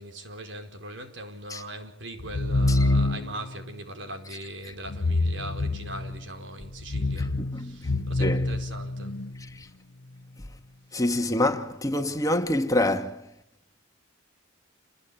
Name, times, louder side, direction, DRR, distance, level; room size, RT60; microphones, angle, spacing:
voice 1, 0.0-9.3, right 1 dB, 70° right, 4.7 m, -40 dB
sound 1, 2.2-3.5 4.9-6.3 6.8-9.3, left 2 dB, 80° left, 1.0 m, -26 dB
voice 2, 7.4-8.5 9.5-9.7 10.9-13.3, left 1 dB, 20° left, 2.2 m, -27 dB
28.5 x 22.0 x 8.8 m
head